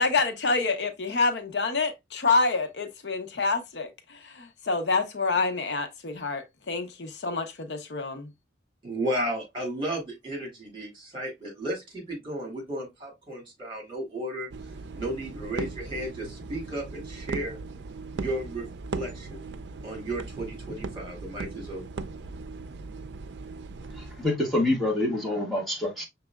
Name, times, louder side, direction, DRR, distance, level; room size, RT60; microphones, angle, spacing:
voice 1, 0.0-8.3, left 3 dB, 70° left, 0.7 m, -27 dB
voice 2, 8.8-14.5 14.9-17.6 18.1-18.7 18.9-19.5 19.8-22.0, right 1 dB, 30° right, 2.3 m, -34 dB
sound 1, 14.5-24.3, right 3 dB, 75° right, 0.4 m, -38 dB
voice 3, 24.0-26.1, left 1 dB, ahead, 1.4 m, -26 dB
6.0 x 3.3 x 2.3 m
head